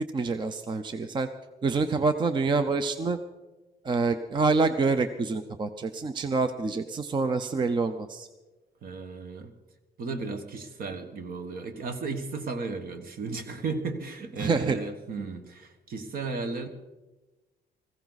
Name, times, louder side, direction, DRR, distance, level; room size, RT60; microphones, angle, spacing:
voice 1, 0.1-1.3 1.6-3.2 3.8-8.3 14.4-14.8, right 4 dB, 30° right, 10 dB, 0.6 m, -26 dB
voice 2, 8.8-9.5 10.0-16.7, right 4 dB, 60° right, 8 dB, 1.5 m, -35 dB
19.5 x 15.5 x 4.1 m, 1.1 s
wide cardioid pair, 175°, 17 cm